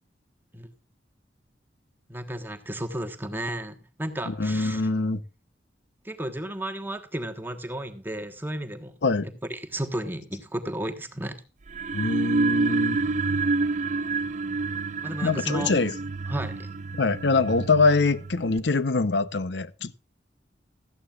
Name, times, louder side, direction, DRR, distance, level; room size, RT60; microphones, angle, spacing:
voice 1, 2.1-4.8 6.0-8.9 9.2-11.4 15.0-15.7 16.3-16.7, right 1 dB, 10° right, 1.3 m, -33 dB
voice 2, 4.3-5.2 9.0-9.3 11.9-13.0 15.2-15.9 17.0-19.9, left 3 dB, 75° left, 0.8 m, -24 dB
sound 1, 11.7-18.6, right 3 dB, 40° right, 0.6 m, -28 dB
16.5 x 13.0 x 2.4 m
head